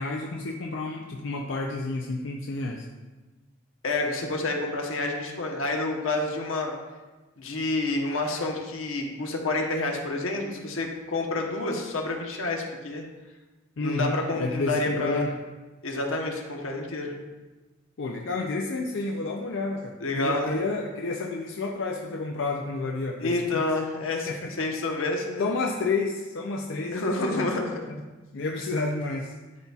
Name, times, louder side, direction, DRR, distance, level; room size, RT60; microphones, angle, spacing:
voice 1, 0.0-2.9 13.8-15.3 18.0-23.6 24.3-24.5 25.4-27.5 27.9-28.0 28.3-29.3, left 3 dB, 65° left, 0 dB, 0.5 m, -30 dB
voice 2, 3.8-6.7 7.4-13.0 13.8-15.3 15.8-17.1 20.0-20.6 23.2-25.5 26.9-27.8, left 2 dB, 85° left, 1 dB, 1.0 m, -29 dB
12.0 x 4.1 x 2.4 m, 1.2 s
head